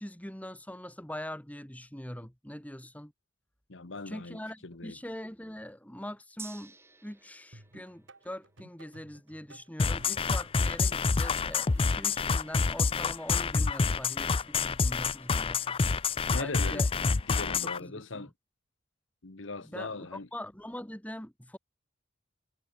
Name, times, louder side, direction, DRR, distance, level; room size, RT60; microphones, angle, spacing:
voice 1, 0.0-3.1 4.1-6.8 7.0-15.8 16.4-16.9 17.6-18.3 19.6-21.6, left 1 dB, 10° left, 2.4 m, -43 dB
voice 2, 3.7-5.0 16.2-18.3 19.2-20.3, left 3 dB, 75° left, 1.4 m, -40 dB
Gong, 6.4-14.1 14.5-14.6, right 4 dB, 15° right, 3.1 m, -56 dB
sound 1, 7.5-13.1, right 1 dB, 70° right, 3.7 m, -55 dB
sound 2, 9.8-17.8, left 4 dB, 30° left, 0.5 m, -27 dB
head